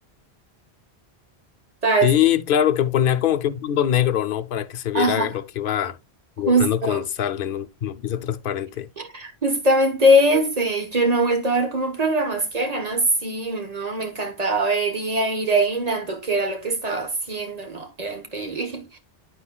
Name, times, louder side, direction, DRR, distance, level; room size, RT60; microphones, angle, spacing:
voice 1, 2.0-6.0 6.4-8.9, left 10 dB, 60° left, 0.8 m, -23 dB
voice 2, 4.9-5.3 6.5-7.0 9.0-19.0, right 1 dB, 40° right, 1.2 m, -22 dB
11.5 x 4.4 x 2.2 m
omnidirectional pair, 1.1 m